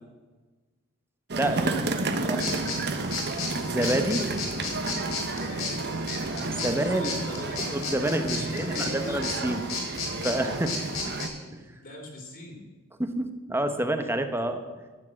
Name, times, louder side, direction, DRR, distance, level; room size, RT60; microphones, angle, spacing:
sound 1, 1.3-11.3, right 3 dB, 50° right, 1.0 m, -31 dB
voice 1, 1.5-2.4 3.0-3.3 5.4-6.1 6.7-7.6 8.3-9.2 11.6-12.7, left 1 dB, 40° left, 2 dB, 2.5 m, -43 dB
sound 2, 2.4-11.3, left 4 dB, 70° left, 3.9 m, -34 dB
voice 2, 3.6-4.2 6.6-7.2 7.7-9.6 10.2-10.7 11.5-11.6 13.0-14.6, right 1 dB, 10° right, 8 dB, 0.9 m, -28 dB
13.5 x 7.3 x 7.5 m, 1.3 s
head